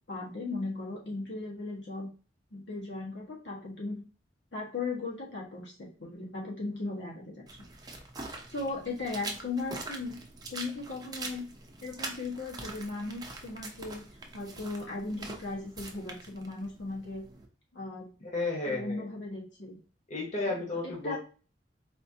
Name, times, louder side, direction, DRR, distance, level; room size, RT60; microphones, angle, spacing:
voice 1, 0.1-2.1 2.5-4.0 4.5-7.4 8.5-10.2 10.5-11.4 11.8-14.0 14.3-17.2 17.7-18.1 18.6-19.8 20.4-21.2, left 3 dB, 75° left, -4 dB, 1.4 m, -37 dB
sound 1, 7.5-17.5, right 3 dB, 20° right, 0.6 m, -44 dB
voice 2, 18.2-19.1 20.1-21.2, left 3 dB, 40° left, -3 dB, 1.2 m, -33 dB
4.2 x 2.8 x 2.7 m, 0.37 s
head